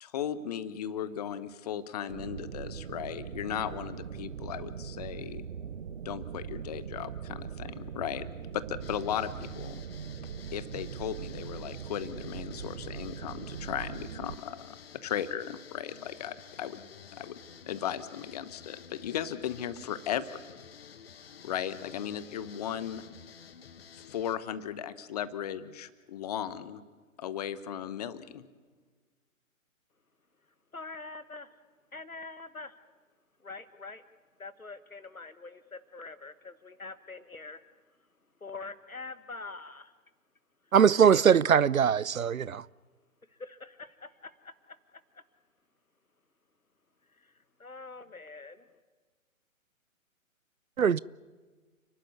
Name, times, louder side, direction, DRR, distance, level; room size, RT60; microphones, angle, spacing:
voice 1, 0.0-5.4 6.0-8.3 8.5-9.3 9.6-9.8 10.5-14.7 15.0-16.8 17.2-17.4 17.7-20.2 21.4-23.0 24.1-26.8 27.2-28.5, left 10 dB, 30° left, 1.1 m, -36 dB
sound 1, 2.1-14.4, right 7 dB, 50° right, 0.9 m, -41 dB
sound 2, 8.8-24.4, left 7 dB, 45° left, 1.4 m, -51 dB
voice 2, 30.7-31.5 31.9-32.8 33.4-34.0 34.4-37.6 38.4-39.9 41.0-41.4 43.4-44.5 47.2-47.3 47.6-48.7, left 3 dB, 85° left, 1.7 m, -44 dB
voice 3, 40.7-42.6 50.8-51.0, right 7 dB, 75° right, 0.6 m, -22 dB
30.0 x 11.5 x 9.5 m
figure-of-eight pair, 130°, 41 cm